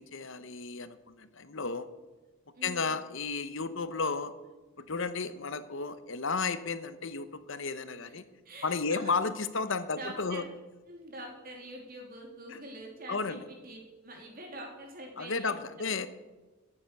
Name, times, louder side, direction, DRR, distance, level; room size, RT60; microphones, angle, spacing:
voice 1, 0.0-1.9 2.6-4.3 4.8-8.2 8.6-10.4 12.5-12.6 13.1-13.4 15.2-16.1, left 4 dB, 55° left, 13 dB, 0.9 m, -33 dB
voice 2, 2.5-3.0 8.0-8.2 8.4-9.1 9.9-10.4 10.9-15.6 15.8-16.0, right 1 dB, 40° right, 0 dB, 3.1 m, -45 dB
13.5 x 8.7 x 6.7 m, 1.2 s
head